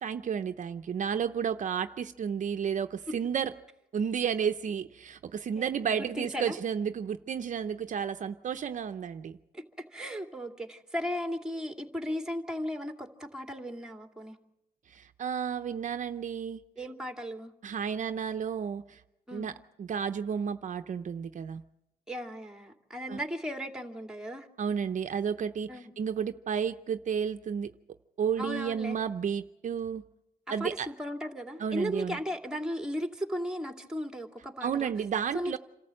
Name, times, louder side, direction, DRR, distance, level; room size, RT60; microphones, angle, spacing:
voice 1, 0.0-3.5 3.9-9.3 14.9-16.6 17.6-19.0 19.3-19.5 19.8-21.6 23.1-23.2 24.6-27.7 28.2-30.0 30.5-30.9 31.6-32.2 34.6-35.6, right 7 dB, 55° right, 8 dB, 0.7 m, -32 dB
voice 2, 5.5-6.6 9.5-14.4 16.8-17.5 19.3-19.5 22.1-24.5 25.7-25.9 28.4-29.0 30.5-34.9 35.3-35.6, equal, 5° right, 3 dB, 2.5 m, -36 dB
27.0 x 14.0 x 7.7 m, 0.90 s
cardioid pair, 90°, 15 cm